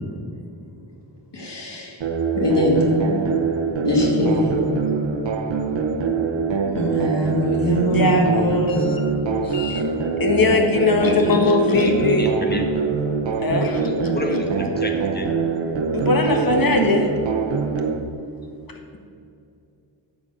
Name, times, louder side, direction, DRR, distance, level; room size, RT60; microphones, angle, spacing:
voice 1, 1.3-2.0 2.3-2.8 3.8-4.5 6.7-8.6 9.5-9.8, equal, 65° left, -2 dB, 2.3 m, -22 dB
sound 1, 2.0-18.0, right 5 dB, 85° right, 0.9 m, -24 dB
voice 2, 7.7-9.0 9.4-9.8 10.2-12.3 13.4-14.2 15.9-17.1, left 3 dB, 50° left, 2 dB, 1.6 m, -20 dB
voice 3, 11.8-12.7 14.1-15.3, left 1 dB, 20° left, 3 dB, 1.4 m, -29 dB
13.5 x 5.1 x 7.9 m, 2.6 s
wide cardioid pair, 115°, 44 cm